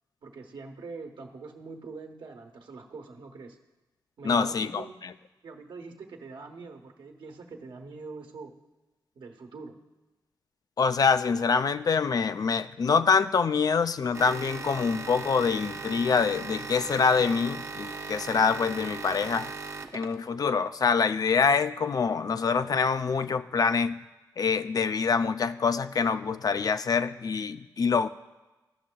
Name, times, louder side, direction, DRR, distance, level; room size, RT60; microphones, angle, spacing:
voice 1, 0.2-3.6 4.2-5.0 5.4-8.5 9.1-9.7, right 4 dB, 70° right, 3 dB, 1.1 m, -43 dB
voice 2, 4.2-4.8 10.8-19.5 19.9-24.0 24.4-28.1, left 5 dB, 50° left, 11 dB, 0.4 m, -25 dB
sound 1, 14.1-20.3, right 4 dB, 35° right, 0.6 m, -38 dB
15.0 x 6.1 x 2.3 m, 1.1 s
cardioid pair, 55°, 8 cm